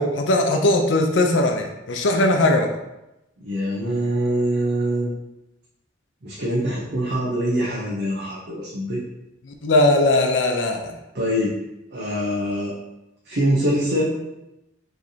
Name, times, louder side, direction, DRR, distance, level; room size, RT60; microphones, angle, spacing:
voice 1, 0.0-2.7 9.6-10.9, left 2 dB, 75° left, 4 dB, 0.6 m, -19 dB
voice 2, 3.4-5.1 6.2-9.0 11.1-11.6 11.9-12.7 13.3-14.2, equal, 65° right, -5 dB, 0.8 m, -24 dB
4.9 x 3.3 x 2.8 m, 0.92 s
head